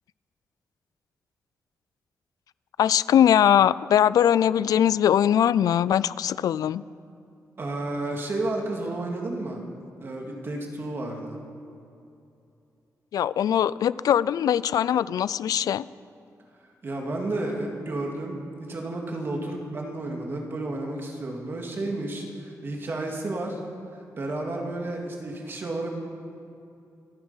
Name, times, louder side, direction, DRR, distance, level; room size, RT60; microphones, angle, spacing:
voice 1, 2.8-6.8 13.1-15.9, left 10 dB, 80° left, 19 dB, 0.4 m, -21 dB
voice 2, 7.6-9.6 10.0-11.4 16.8-23.6 24.2-25.9, right 2 dB, 40° right, 1 dB, 2.2 m, -31 dB
25.5 x 9.6 x 5.7 m, 2.7 s
wide cardioid pair, 155°, 6 cm